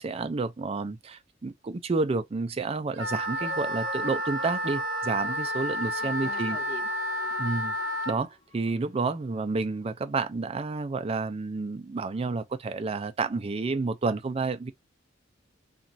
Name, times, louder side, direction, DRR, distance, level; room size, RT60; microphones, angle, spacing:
voice 1, 0.0-6.6 7.4-7.8 8.1-14.7, right 3 dB, 30° right, 0.4 m, -30 dB
Wind instrument woodwind instrument, 2.9-8.2, equal, 80° right, 0.7 m, -31 dB
sound 1, 3.4-9.1 9.6-9.7, left 2 dB, 30° left, 1.1 m, -47 dB
voice 2, 6.0-7.3, left 3 dB, 55° left, 0.7 m, -44 dB
3.0 x 2.3 x 2.6 m
head